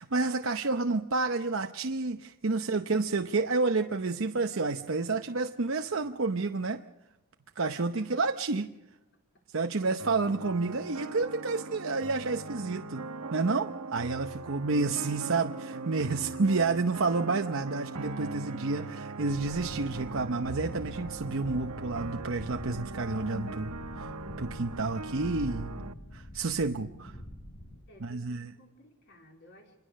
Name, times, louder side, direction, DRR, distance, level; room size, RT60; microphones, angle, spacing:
voice 1, 0.0-6.8 7.6-8.7 9.5-13.0 13.3-25.7 26.1-27.2 28.0-28.5, right 3 dB, 60° right, 6 dB, 0.8 m, -30 dB
voice 2, 2.5-3.2 7.8-8.1 9.3-9.4 10.0-10.2 14.3-14.4 27.9-29.8, equal, 55° left, 1 dB, 3.6 m, -58 dB
sound 1, 10.0-25.9, right 3 dB, 90° right, 1.2 m, -40 dB
sound 2, 19.3-27.8, left 1 dB, 75° left, 5.4 m, -44 dB
26.5 x 21.5 x 6.5 m, 0.90 s
head